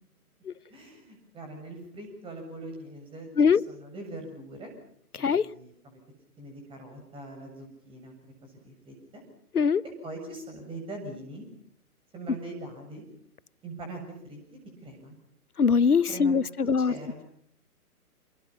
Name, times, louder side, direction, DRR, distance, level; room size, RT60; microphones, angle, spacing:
voice 1, 0.7-4.7 5.2-6.0 6.4-9.2 9.8-11.5 12.1-13.0 13.6-14.4 14.8-15.2 16.1-16.3 16.8-17.2, right 2 dB, 10° right, 7.5 m, -42 dB
voice 2, 15.6-16.9, left 6 dB, 75° left, 1.0 m, -22 dB
29.0 x 27.0 x 5.7 m
figure-of-eight pair, 130°, 45 cm